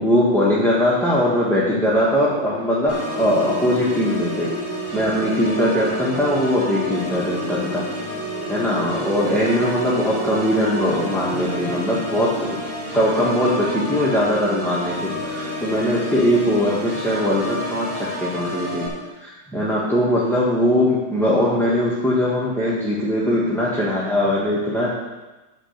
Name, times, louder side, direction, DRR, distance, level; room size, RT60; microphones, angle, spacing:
voice 1, 0.0-4.5 4.9-7.8 8.5-12.6 12.9-18.8 19.2-24.9, left 1 dB, ahead, -7 dB, 1.2 m, -20 dB
Organ, 2.9-18.9, equal, 35° right, 3.7 m, -29 dB
10.0 x 5.3 x 6.6 m, 1.1 s
omnidirectional pair, 2.1 m